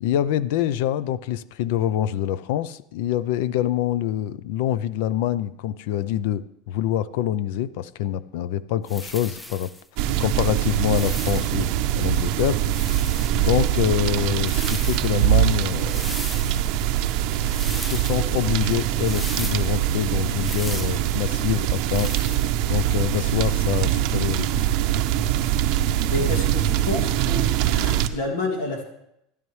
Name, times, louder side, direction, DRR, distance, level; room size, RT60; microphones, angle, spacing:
voice 1, 0.0-11.7 11.9-12.6 13.4-16.0 17.7-22.4 22.7-24.5, left 11 dB, 70° left, 18 dB, 0.4 m, -25 dB
sound 1, 8.9-9.8 10.7-11.7 12.6-13.5 14.3-15.1 15.8-16.7 17.4-18.2 19.0-19.7 20.4-21.0 21.9-22.5, left 1 dB, 5° left, 0.5 m, -37 dB
sound 2, 10.0-28.1, right 12 dB, 60° right, 0.6 m, -23 dB
voice 2, 26.1-28.8, left 2 dB, 90° left, 2 dB, 2.4 m, -29 dB
12.5 x 11.0 x 3.2 m, 0.81 s
supercardioid pair, 150°, 0 cm